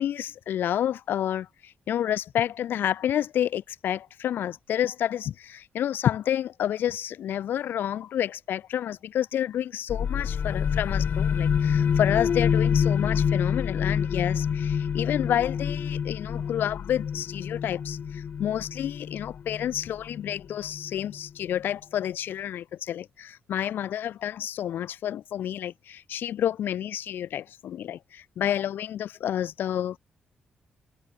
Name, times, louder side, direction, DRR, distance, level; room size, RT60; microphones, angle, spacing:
voice 1, 0.0-30.0, left 10 dB, 85° left, 1.3 m, -29 dB
sound 1, 9.9-21.3, left 7 dB, 55° left, 1.0 m, -27 dB
cardioid pair, 95°, 3 cm